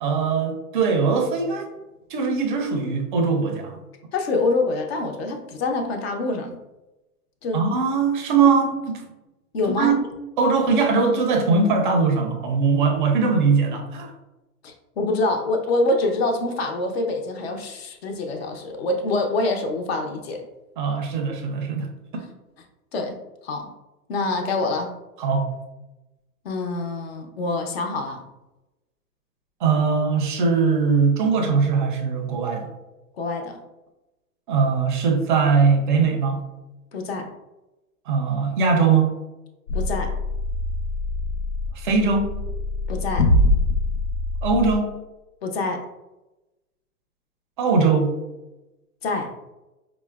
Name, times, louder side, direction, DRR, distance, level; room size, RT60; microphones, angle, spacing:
voice 1, 0.0-1.7 2.1-3.8 7.5-9.0 9.8-9.9 10.4-14.1 20.8-21.9 25.2-25.5 29.6-32.7 34.5-36.5 38.1-39.2 41.7-42.3 44.4-44.9 47.6-48.2, right 5 dB, 35° right, 4 dB, 0.4 m, -21 dB
voice 2, 4.1-6.6 7.4-7.6 9.5-10.0 14.6-20.4 22.9-23.2 23.4-23.7 24.1-24.9 26.4-28.2 33.2-33.6 36.9-37.3 39.7-40.1 42.9-43.3 45.4-45.8 49.0-49.3, left 2 dB, 45° left, 4 dB, 0.4 m, -25 dB
sound 1, 39.7-44.8, left 2 dB, 85° left, 0.9 m, -24 dB
4.6 x 2.0 x 2.2 m, 1.0 s
hypercardioid pair, 140°, 46 cm